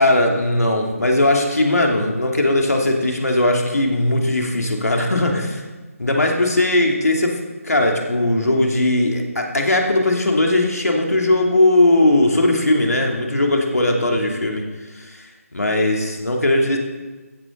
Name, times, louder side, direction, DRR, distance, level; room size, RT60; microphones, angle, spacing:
voice 1, 0.0-5.6 6.0-7.4 7.6-14.6 14.9-15.2 15.5-16.8, left 1 dB, 85° left, 1 dB, 2.9 m, -18 dB
15.5 x 14.0 x 3.9 m, 1.2 s
figure-of-eight pair, 155°, 8 cm